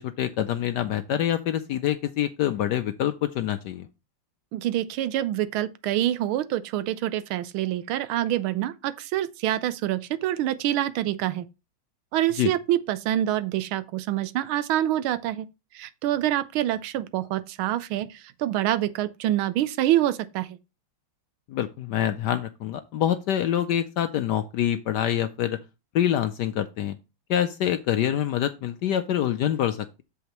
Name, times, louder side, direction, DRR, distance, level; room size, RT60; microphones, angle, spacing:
voice 1, 0.0-3.9 12.4-12.5 21.5-25.6 25.9-27.0 27.3-30.0, left 11 dB, 75° left, 1.0 m, -26 dB
voice 2, 4.5-11.4 12.1-15.5 15.7-18.1 18.4-20.5, right 13 dB, 80° right, 1.5 m, -26 dB
8.1 x 7.2 x 3.0 m
omnidirectional pair, 2.3 m